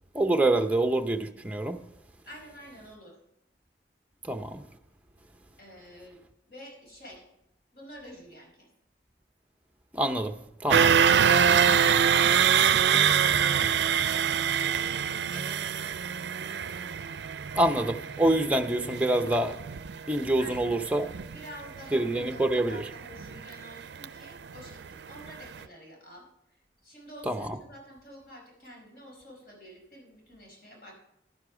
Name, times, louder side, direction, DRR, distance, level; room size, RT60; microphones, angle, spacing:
voice 1, 0.1-1.8 4.3-4.6 9.9-10.3 10.6-10.9 17.6-19.5 20.1-21.1 21.9-22.8 27.3-27.4, right 1 dB, 10° right, 0.6 m, -26 dB
voice 2, 2.2-3.2 5.6-6.2 6.5-7.2 7.7-8.7 10.7-12.4 13.0-14.3 14.6-16.3 20.4-20.8 21.3-26.3 26.8-30.9, equal, 55° left, 4.9 m, -48 dB
sound 1, 10.7-24.7 25.1-25.3 25.6-25.7, right 8 dB, 75° right, 0.4 m, -25 dB
11.5 x 9.9 x 4.9 m
head